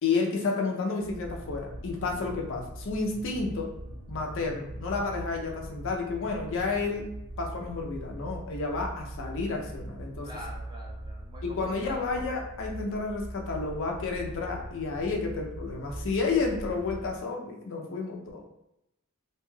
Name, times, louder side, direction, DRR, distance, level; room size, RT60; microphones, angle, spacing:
voice 1, 0.0-3.7 4.1-10.3 11.4-18.5, left 4 dB, 60° left, 1 dB, 0.5 m, -31 dB
sound 1, 1.0-17.2, right 1 dB, 65° right, 0.6 m, -41 dB
voice 2, 10.2-12.1, equal, 20° right, -3 dB, 0.8 m, -45 dB
2.6 x 2.2 x 3.1 m, 0.85 s
head